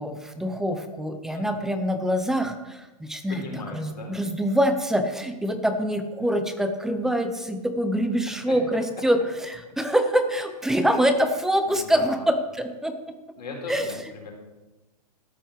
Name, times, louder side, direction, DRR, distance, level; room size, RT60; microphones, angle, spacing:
voice 1, 0.0-3.4 3.7-9.2 9.5-12.9 13.7-13.9, equal, ahead, 8 dB, 0.6 m, -25 dB
voice 2, 1.3-1.7 3.3-4.1 8.5-8.6 11.6-12.3 13.4-14.3, left 3 dB, 80° left, 0 dB, 4.2 m, -38 dB
13.5 x 6.2 x 6.5 m, 1.1 s
hypercardioid pair, 150°, 21 cm